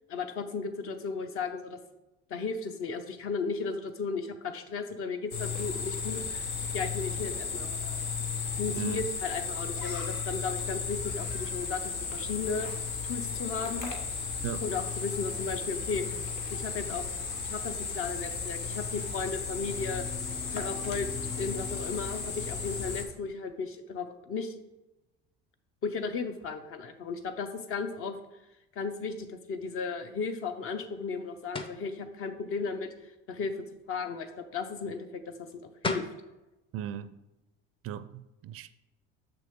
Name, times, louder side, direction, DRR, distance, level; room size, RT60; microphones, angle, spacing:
voice 1, 0.1-1.8 2.3-7.7 8.6-12.7 13.0-14.0 14.6-16.2 16.5-20.1 20.5-21.1 21.4-24.5 25.8-28.1 28.8-32.9 33.3-35.5 35.8-36.0, left 4 dB, 50° left, 0.9 m, -35 dB
sound 1, 5.3-23.0, left 5 dB, 80° left, 1.3 m, -34 dB
voice 2, 8.7-9.1 14.4-14.7 36.7-37.1 37.8-38.7, right 9 dB, 50° right, 0.4 m, -37 dB
sound 2, 31.5-31.8 35.5-35.6 35.8-36.2, left 3 dB, 20° left, 0.6 m, -33 dB
6.9 x 5.9 x 3.6 m
cardioid pair, 110°, 29 cm